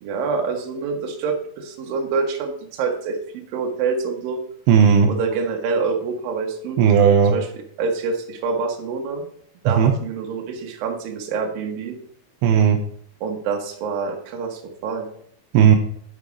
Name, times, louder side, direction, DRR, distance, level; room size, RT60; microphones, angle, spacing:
voice 1, 0.0-3.2 3.5-4.4 5.1-6.8 7.3-7.5 7.8-9.3 9.6-12.0 13.2-15.1, right 4 dB, 65° right, 1 dB, 2.7 m, -26 dB
voice 2, 4.7-5.1 6.8-7.3 9.8-10.0 12.4-12.8 15.5-15.8, right 7 dB, 80° right, 4 dB, 2.8 m, -14 dB
11.0 x 4.6 x 5.1 m, 0.64 s
omnidirectional pair, 4.9 m